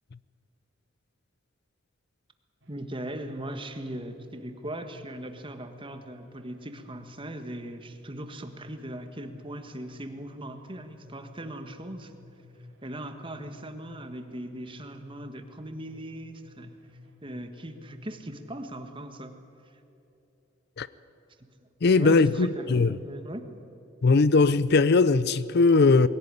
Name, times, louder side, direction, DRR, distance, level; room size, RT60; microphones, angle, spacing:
sound 1, 2.6-18.6, left 2 dB, 70° right, 3.8 m, -53 dB
voice 1, 2.7-12.1 12.8-16.7 17.2-19.4 21.4-21.5 22.0-23.5, right 1 dB, 25° right, 1.6 m, -39 dB
voice 2, 21.8-23.0 24.0-26.1, left 3 dB, 55° left, 0.5 m, -20 dB
22.0 x 17.0 x 9.8 m
head